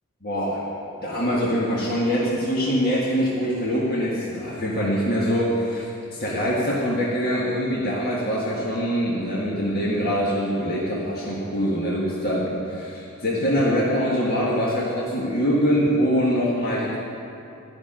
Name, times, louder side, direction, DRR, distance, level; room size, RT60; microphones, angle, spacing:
voice 1, 0.2-0.7 1.0-17.0, equal, 45° left, -5 dB, 1.7 m, -24 dB
13.5 x 6.2 x 8.9 m, 2.7 s
head